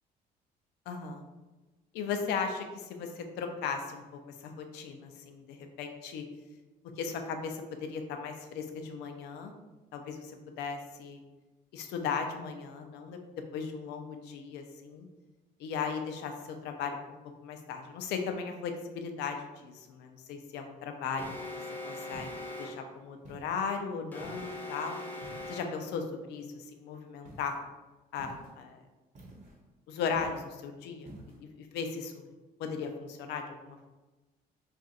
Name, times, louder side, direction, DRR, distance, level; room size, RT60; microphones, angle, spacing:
voice 1, 0.9-1.2 1.9-4.0 4.4-6.2 7.0-9.5 9.9-11.2 11.7-13.2 13.5-15.1 15.6-21.3 21.9-22.3 22.6-25.0 25.5-27.6 28.1-28.8 29.9-31.1 31.4-32.3 32.6-33.9, left 5 dB, 80° left, 5 dB, 0.5 m, -37 dB
Alarm, 21.2-22.9 24.1-25.9, left 2 dB, 10° left, 0.5 m, -41 dB
sound 1, 21.2-21.6 22.1-22.7 23.2-23.6 24.2-24.6 25.2-25.7 27.2-27.6 28.2-28.6 29.1-29.6 30.1-30.6 31.0-31.4, right 1 dB, 45° right, 1.0 m, -50 dB
2.5 x 2.4 x 4.0 m, 1.2 s
cardioid pair, 110°, 17 cm